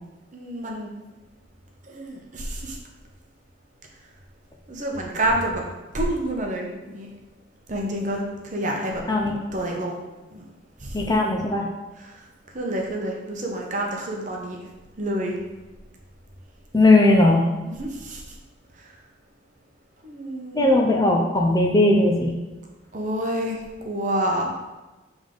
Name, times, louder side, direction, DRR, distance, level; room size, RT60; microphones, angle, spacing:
voice 1, 0.3-0.9 1.8-2.8 4.7-5.6 5.9-7.1 7.7-9.0 9.5-10.0 10.3-10.5 10.8-11.0 12.1-12.2 12.5-14.6 15.0-15.3 17.6-18.2 20.0-20.8 22.9-23.6 23.8-24.5, right 1 dB, 40° right, 0 dB, 0.9 m, -28 dB
voice 2, 10.9-11.7 16.7-17.4 20.5-22.3, left 2 dB, 20° left, 0 dB, 0.5 m, -18 dB
7.1 x 3.5 x 3.8 m, 1.1 s
head